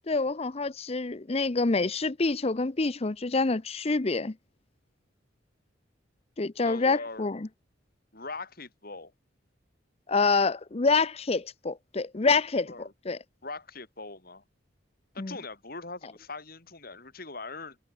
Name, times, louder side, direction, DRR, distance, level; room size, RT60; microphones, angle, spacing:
voice 1, 0.1-4.3 6.4-7.4 10.1-12.7 13.1-13.2 15.2-15.3, left 3 dB, 30° left, 0.7 m, -26 dB
voice 2, 6.6-7.3 8.1-9.1 12.7-12.9 13.4-14.4 15.1-17.8, left 3 dB, 50° left, 4.1 m, -41 dB
head